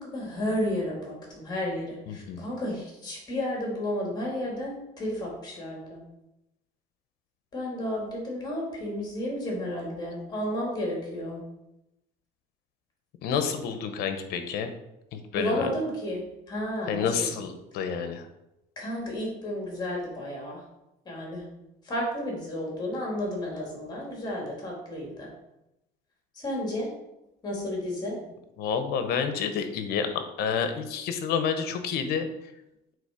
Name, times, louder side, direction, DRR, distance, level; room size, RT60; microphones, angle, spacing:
voice 1, 0.0-6.0 7.5-11.4 15.3-17.3 18.8-20.6 21.0-21.5 21.8-25.3 26.3-26.9 27.4-28.2, left 1 dB, 20° left, -2 dB, 2.5 m, -32 dB
voice 2, 2.1-2.4 13.2-14.7 15.1-15.7 16.9-18.3 28.6-32.3, left 6 dB, 60° left, 8 dB, 1.0 m, -29 dB
8.2 x 3.9 x 5.1 m, 0.91 s
cardioid pair, 160°, 18 cm